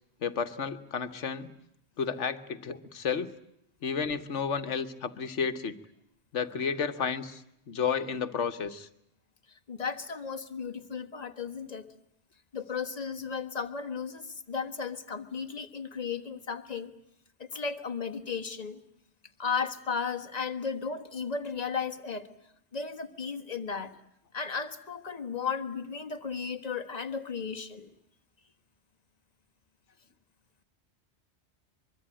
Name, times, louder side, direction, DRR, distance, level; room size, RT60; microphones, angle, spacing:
voice 1, 0.2-1.5 2.0-3.3 3.8-5.8 6.3-7.4 7.7-8.9, left 6 dB, 85° left, 11 dB, 1.5 m, -32 dB
voice 2, 9.7-11.9 12.5-16.9 17.4-18.8 19.4-22.3 22.7-23.9 24.3-27.9, left 5 dB, 35° left, 8 dB, 1.5 m, -35 dB
24.0 x 23.0 x 8.9 m, 0.77 s
omnidirectional pair, 1.2 m